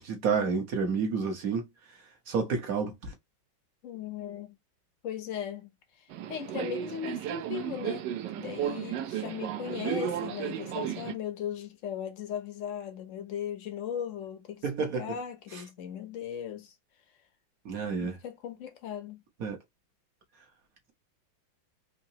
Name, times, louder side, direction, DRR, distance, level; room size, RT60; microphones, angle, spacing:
voice 1, 0.0-1.6 2.3-2.9 14.6-15.2 15.5-15.6 17.6-18.2 19.4-19.6, right 5 dB, 50° right, 1.3 m, -29 dB
voice 2, 3.8-4.5 5.0-5.7 6.3-8.1 8.4-16.7 18.0-19.2, left 9 dB, 60° left, 0.8 m, -37 dB
Subway metro underground, 6.1-11.1, right 10 dB, 75° right, 1.1 m, -34 dB
3.8 x 2.9 x 2.8 m
omnidirectional pair, 2.2 m